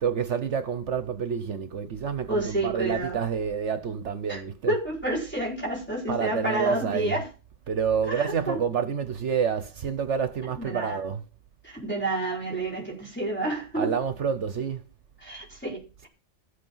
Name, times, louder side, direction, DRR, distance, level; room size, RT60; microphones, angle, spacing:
voice 1, 0.0-4.8 6.1-7.2 7.7-11.2 13.7-14.8, right 7 dB, 65° right, 1.2 m, -28 dB
voice 2, 2.3-3.2 4.3-4.4 4.7-7.3 8.1-8.6 10.6-11.1 11.6-14.0 15.2-16.1, right 2 dB, 10° left, 4.9 m, -29 dB
14.5 x 8.4 x 5.6 m
omnidirectional pair, 1.3 m